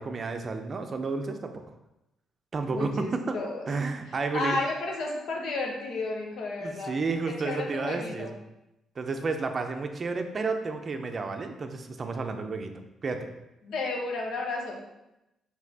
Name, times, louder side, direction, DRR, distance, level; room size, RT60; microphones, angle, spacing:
voice 1, 0.0-1.5 2.5-3.3 3.7-4.6 6.6-8.3 9.0-12.7 13.0-13.3, right 4 dB, 40° right, 6 dB, 0.5 m, -31 dB
voice 2, 2.7-3.7 4.1-7.0 7.3-8.3 13.6-14.8, left 3 dB, 75° left, 1 dB, 0.9 m, -32 dB
5.0 x 3.4 x 2.8 m, 0.91 s
cardioid pair, 90°, 0 cm